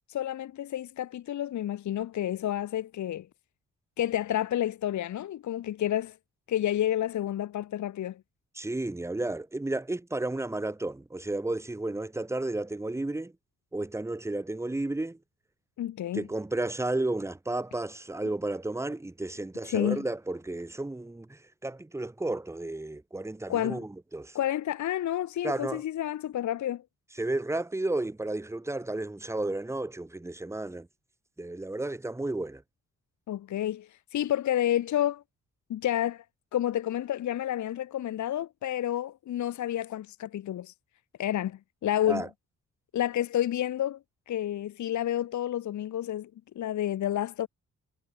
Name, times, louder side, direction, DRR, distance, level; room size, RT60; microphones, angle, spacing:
voice 1, 0.1-3.3 4.0-6.2 6.5-8.2 15.8-16.3 19.7-20.0 23.5-23.8 24.3-26.8 33.3-35.2 35.7-36.2 36.5-40.7 41.2-42.3 42.9-44.0 44.3-46.3 46.6-47.5, left 11 dB, 65° left, 0.7 m, -30 dB
voice 2, 8.5-13.3 13.7-15.2 16.1-24.4 25.4-25.8 27.2-30.9 31.4-32.6 42.0-42.3, right 2 dB, 10° right, 1.2 m, -32 dB
wide cardioid pair, 170°, 32 cm